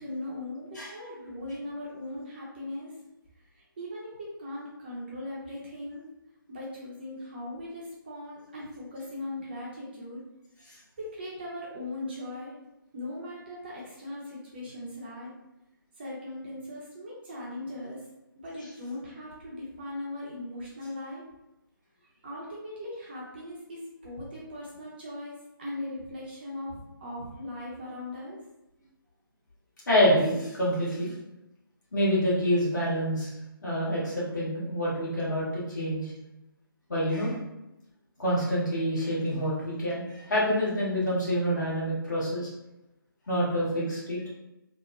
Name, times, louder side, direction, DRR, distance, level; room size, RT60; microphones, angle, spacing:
voice 1, 0.0-2.9 3.5-6.0 6.5-10.2 11.0-12.6 12.9-15.3 16.0-18.0 18.4-21.2 22.2-28.4, left 1 dB, 25° right, -5 dB, 0.5 m, -39 dB
voice 2, 29.9-31.1 31.9-33.3 33.6-36.1 36.9-37.4 38.2-42.5 43.3-44.2, equal, 50° left, -7 dB, 1.3 m, -27 dB
2.8 x 2.0 x 2.4 m, 0.92 s
figure-of-eight pair, 155°, 12 cm